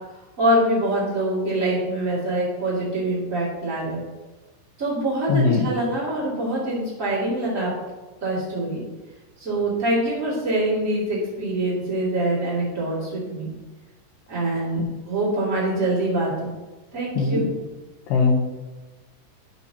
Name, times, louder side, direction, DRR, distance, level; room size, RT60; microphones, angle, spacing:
voice 1, 0.4-4.0 4.8-7.7 8.2-8.8 9.4-13.5 14.3-14.8 15.1-16.5 16.9-17.4, right 1 dB, 50° right, -8 dB, 0.9 m, -24 dB
voice 2, 5.3-5.7 17.2-17.5 18.1-18.4, left 4 dB, 85° left, -2 dB, 2.4 m, -19 dB
12.5 x 6.0 x 2.8 m, 1.2 s
omnidirectional pair, 6.0 m